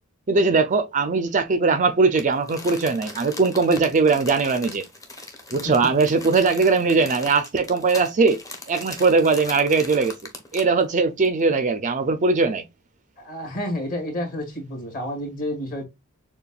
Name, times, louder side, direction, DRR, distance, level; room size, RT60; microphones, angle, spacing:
voice 1, 0.3-4.8 5.5-8.4 8.7-10.2 10.5-12.6, right 4 dB, 35° right, 0.5 m, -20 dB
Crumpling crinkling, 2.1-10.8 11.2-11.3, left 2 dB, 15° left, 0.9 m, -39 dB
voice 2, 13.2-15.8, left 1 dB, 40° left, 2.1 m, -30 dB
6.8 x 2.3 x 2.3 m
head